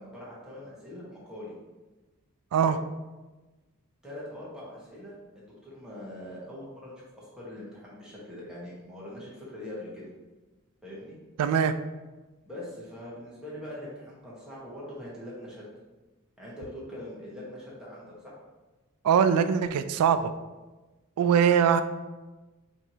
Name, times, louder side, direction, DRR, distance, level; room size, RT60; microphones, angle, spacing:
voice 1, 0.0-1.6 2.6-2.8 4.0-10.1 10.8-11.2 12.5-15.6 16.4-18.4, left 1 dB, 5° right, -7 dB, 1.2 m, -42 dB
voice 2, 11.4-11.7 19.0-20.3 21.2-21.8, right 7 dB, 85° right, 14 dB, 0.3 m, -22 dB
4.5 x 3.1 x 2.8 m, 1.2 s
head